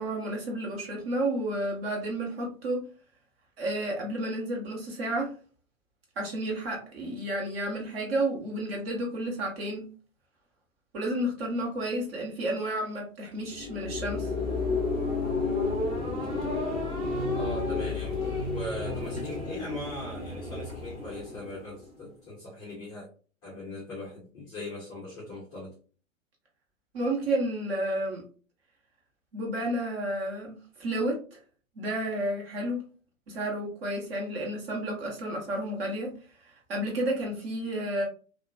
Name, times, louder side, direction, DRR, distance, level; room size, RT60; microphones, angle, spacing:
voice 1, 0.0-2.8 3.6-5.3 6.2-9.9 10.9-14.3 26.9-28.2 29.3-31.4 31.7-32.8 33.3-36.1 36.4-38.0, right 1 dB, 45° right, 1.2 m, -31 dB
sound 1, 13.4-22.0, left 3 dB, 15° right, 0.8 m, -31 dB
voice 2, 17.3-18.2 18.5-23.1 23.4-25.7, left 1 dB, 10° left, 0.4 m, -40 dB
2.9 x 2.4 x 2.2 m
figure-of-eight pair, 115°, 40 cm